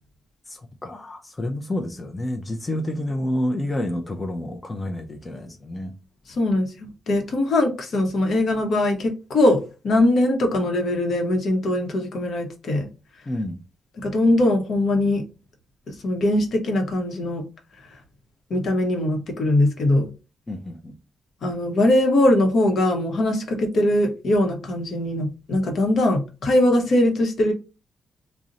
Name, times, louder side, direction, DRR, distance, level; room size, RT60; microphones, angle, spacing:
voice 1, 0.5-5.9 13.3-13.6 20.5-20.9, left 1 dB, 20° left, 0.4 m, -29 dB
voice 2, 6.4-12.9 14.0-15.2 15.9-17.4 18.5-20.1 21.4-27.5, left 1 dB, 65° left, 0.8 m, -21 dB
2.5 x 2.0 x 3.9 m
cardioid pair, 95°, 0 cm